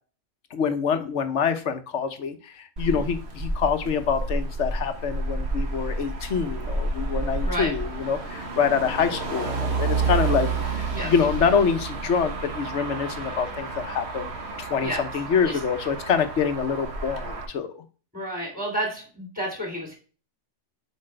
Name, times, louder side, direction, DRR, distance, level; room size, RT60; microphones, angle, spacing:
voice 1, 0.5-14.3 14.6-17.8, left 6 dB, 75° left, 8 dB, 1.2 m, -26 dB
Motor vehicle (road), 2.8-17.5, right 3 dB, 60° right, 1.5 m, -30 dB
voice 2, 7.4-7.7 10.9-11.1 14.8-15.0 15.5-15.6 18.1-19.9, equal, 5° right, -1 dB, 3.5 m, -31 dB
7.5 x 5.1 x 3.3 m, 0.37 s
omnidirectional pair, 1.2 m